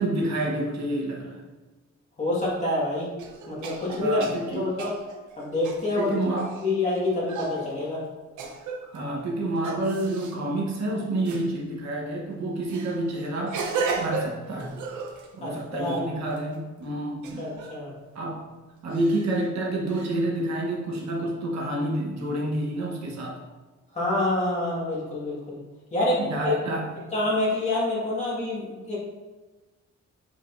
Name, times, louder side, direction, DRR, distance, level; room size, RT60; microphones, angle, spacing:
voice 1, 0.0-1.4 4.0-4.7 6.0-6.6 8.9-13.6 13.9-14.8 15.3-17.5 18.1-18.4 18.8-23.4 26.2-26.9, right 1 dB, 65° right, -2 dB, 1.2 m, -28 dB
voice 2, 2.2-3.1 3.5-4.9 5.4-6.1 6.6-8.0 15.4-16.1 17.4-17.9 23.9-25.6 25.9-26.5 27.1-29.0, left 2 dB, 25° left, -6 dB, 1.8 m, -27 dB
sound 1, 3.2-6.7 7.3-7.7 8.4-9.0 9.6-10.4 11.3-11.5 12.7-15.3 15.7-16.6 17.2-17.8 18.9-19.4 19.9-20.1, right 4 dB, 90° right, 0.8 m, -34 dB
7.5 x 5.0 x 2.6 m, 1.2 s
wide cardioid pair, 175°, 29 cm